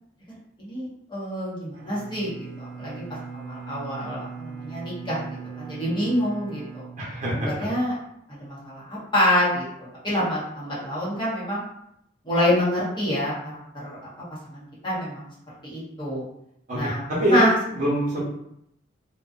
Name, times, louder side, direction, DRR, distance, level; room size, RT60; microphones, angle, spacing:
voice 1, 0.6-3.0 3.3-5.2 5.6-6.8 7.4-7.9 8.3-11.6 12.2-13.3 13.7-14.0 14.5-15.3 15.6-16.2 16.7-17.5, left 1 dB, 25° left, -8 dB, 0.9 m, -26 dB
Bowed string instrument, 1.7-7.8, right 5 dB, 80° right, 0.4 m, -40 dB
voice 2, 7.0-7.7 16.7-17.5 17.7-18.2, right 1 dB, 45° right, -6 dB, 1.0 m, -24 dB
2.4 x 2.3 x 2.4 m, 0.76 s
head